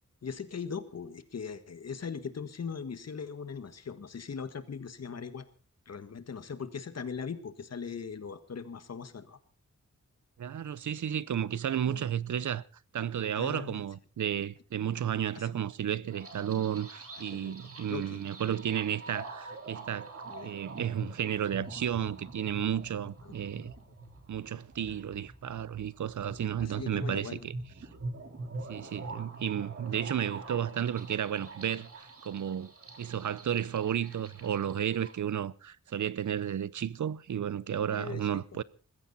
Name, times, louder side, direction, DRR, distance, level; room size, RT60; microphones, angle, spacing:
voice 1, 0.2-5.5 5.9-9.4 11.9-12.0 13.3-13.8 15.3-15.5 17.3-18.2 20.3-20.5 23.2-23.7 26.6-27.5 29.0-29.3 37.9-38.3, left 6 dB, 55° left, 1.6 m, -40 dB
voice 2, 10.4-12.6 12.9-20.1 20.4-23.7 24.3-27.5 28.7-32.7 33.0-38.6, right 9 dB, 75° right, 0.7 m, -33 dB
sound 1, 16.1-35.2, right 3 dB, 50° right, 4.0 m, -44 dB
21.0 x 15.5 x 4.1 m
wide cardioid pair, 175°, 30 cm